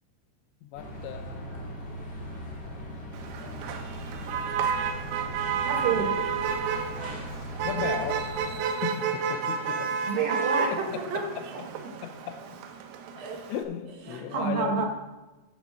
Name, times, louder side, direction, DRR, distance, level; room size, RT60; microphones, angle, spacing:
voice 1, 0.6-1.5 5.9-6.1 7.6-8.3 8.8-10.0 10.7-11.5 12.0-12.6 13.2-14.9, left 9 dB, 80° left, 9 dB, 2.8 m, -36 dB
sound 1, 0.7-8.5, equal, 20° left, 1.7 m, -39 dB
Motor vehicle (road), 3.1-13.6, right 6 dB, 90° right, 3.6 m, -31 dB
voice 2, 5.6-6.2 10.1-11.6 13.2-13.4 14.1-14.9, right 5 dB, 65° right, 1 dB, 2.4 m, -29 dB
9.5 x 6.8 x 6.3 m, 1.1 s
omnidirectional pair, 5.6 m